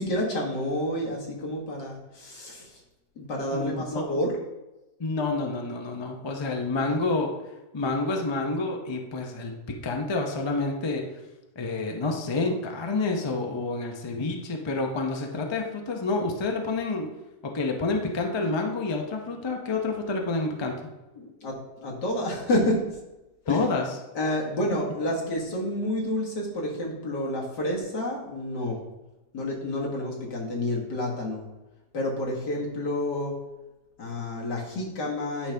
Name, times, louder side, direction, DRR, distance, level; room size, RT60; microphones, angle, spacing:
voice 1, 0.0-2.8 3.2-4.4 21.2-22.8 23.5-23.6 24.2-28.8 29.3-31.4 31.9-33.4 34.0-35.5, left 1 dB, 85° left, -2 dB, 2.3 m, -29 dB
voice 2, 3.5-4.1 5.0-7.3 7.7-11.0 11.6-17.1 17.4-20.8 23.5-23.8, left 3 dB, 30° left, 2 dB, 0.4 m, -28 dB
10.0 x 5.1 x 3.4 m, 1.0 s
omnidirectional pair, 1.8 m